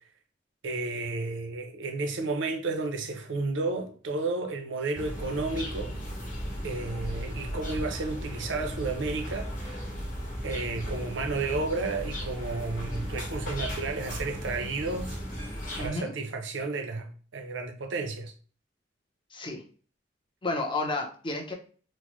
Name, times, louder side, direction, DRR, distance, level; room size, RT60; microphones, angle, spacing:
voice 1, 0.6-6.0 6.6-9.8 10.4-15.2 15.8-18.3, right 3 dB, 80° right, 0.6 m, -32 dB
sound 1, 4.9-15.9, equal, 50° left, 1.3 m, -36 dB
voice 2, 15.8-16.1 19.3-19.6 20.4-21.5, left 2 dB, 25° left, 0.7 m, -31 dB
4.2 x 2.1 x 3.0 m
head